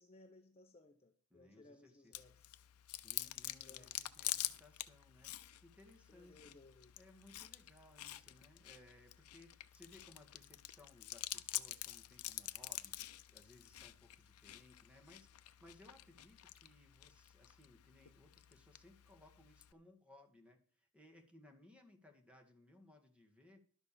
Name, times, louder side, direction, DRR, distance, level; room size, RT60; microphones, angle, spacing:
voice 1, 0.0-2.6 3.6-3.9 6.1-6.9, left 2 dB, 30° left, 0.9 m, -62 dB
voice 2, 1.3-2.3 3.0-6.6 7.0-23.6, left 1 dB, 5° right, 2.0 m, -63 dB
Chewing mastication, 2.1-19.7, left 15 dB, 85° left, 0.7 m, -48 dB
12.0 x 6.1 x 7.0 m
head